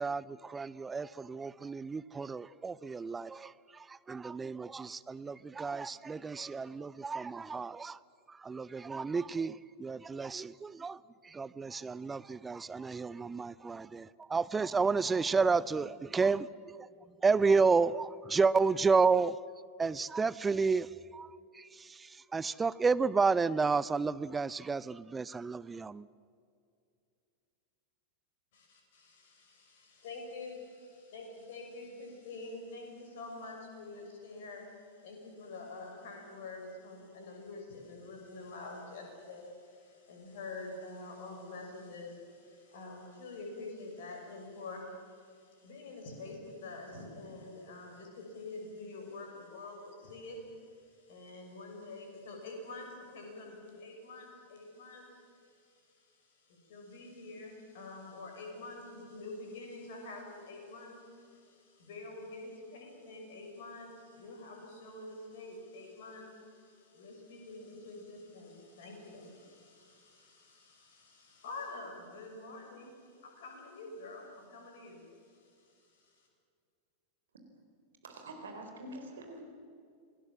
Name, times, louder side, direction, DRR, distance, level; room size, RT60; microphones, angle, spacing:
voice 1, 0.0-8.0 8.3-16.9 17.2-19.4 19.8-26.1, right 4 dB, 15° right, 0.5 m, -31 dB
voice 2, 28.5-76.3, left 2 dB, 55° left, 6.6 m, -47 dB
voice 3, 78.0-79.4, right 1 dB, 65° right, 4.1 m, -45 dB
27.0 x 19.0 x 7.6 m
figure-of-eight pair, 90°, 0 cm